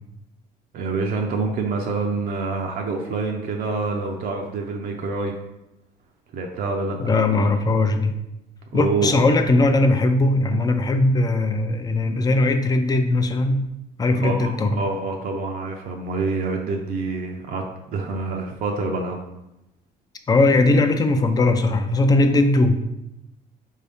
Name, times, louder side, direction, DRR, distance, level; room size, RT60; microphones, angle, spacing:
voice 1, 0.7-5.4 6.3-7.1 8.7-9.2 14.1-17.6 17.9-19.2, right 3 dB, 60° right, 1 dB, 0.5 m, -26 dB
voice 2, 7.0-8.1 8.7-13.6 14.0-14.7 20.3-22.8, left 2 dB, 25° left, 7 dB, 0.4 m, -19 dB
4.5 x 2.7 x 3.4 m, 0.90 s
cardioid pair, 110°, 17 cm